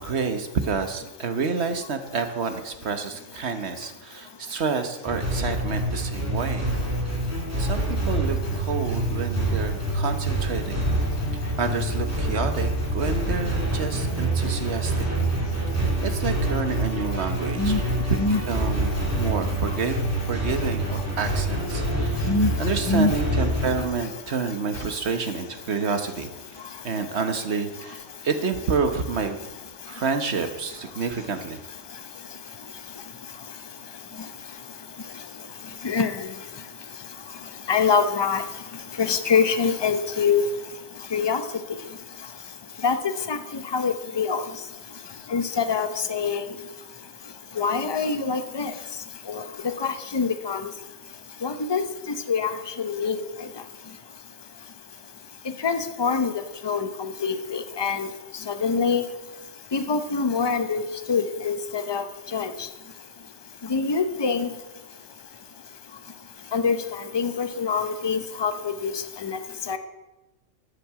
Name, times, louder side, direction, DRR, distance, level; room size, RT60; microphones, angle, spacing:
voice 1, 0.0-6.7 7.6-10.8 11.6-14.9 15.6-15.7 16.0-17.8 18.5-26.3 26.8-29.4 29.9-31.6, right 5 dB, 60° right, 7 dB, 1.4 m, -29 dB
sound 1, 5.1-23.8, right 1 dB, 10° right, 2.3 m, -26 dB
voice 2, 35.8-36.3 37.7-38.4 39.0-40.5 41.1-41.4 42.8-43.0 43.3-44.5 45.3-46.5 47.6-48.7 49.3-49.4 49.8-50.7 51.4-51.8 52.1-53.2 55.6-58.1 58.5-59.0 59.7-62.0 62.3-62.7 63.7-64.5 66.5-66.8 67.1-68.9 69.2-69.4 69.7-69.8, left 5 dB, 25° left, 9 dB, 0.7 m, -24 dB
13.0 x 6.7 x 7.5 m, 1.0 s
omnidirectional pair, 1.3 m